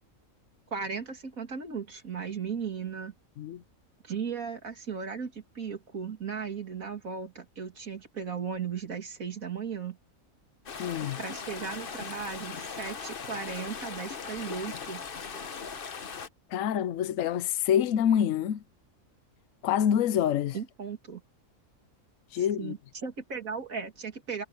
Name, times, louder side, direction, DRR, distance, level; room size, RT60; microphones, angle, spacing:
voice 1, 0.7-3.1 4.0-10.0 11.2-15.0 20.5-21.2 22.6-24.4, right 6 dB, 80° right, 2.8 m, -36 dB
sound 1, 10.7-16.3, left 5 dB, 45° left, 1.2 m, -39 dB
voice 2, 10.8-11.2 16.5-18.6 19.6-20.6 22.3-22.7, left 9 dB, 75° left, 1.1 m, -26 dB
omnidirectional pair, 1.4 m